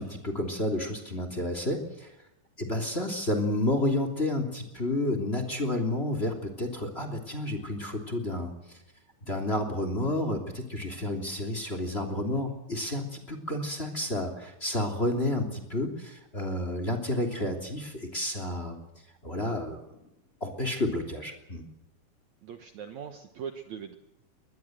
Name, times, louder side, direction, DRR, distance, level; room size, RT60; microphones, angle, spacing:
voice 1, 0.0-2.1 2.6-8.8 9.2-18.8 19.2-19.8 20.4-21.6, left 1 dB, 15° left, 7 dB, 2.8 m, -30 dB
voice 2, 22.4-24.0, right 7 dB, 60° right, 6 dB, 2.2 m, -40 dB
22.5 x 20.0 x 7.9 m, 0.88 s
omnidirectional pair, 4.3 m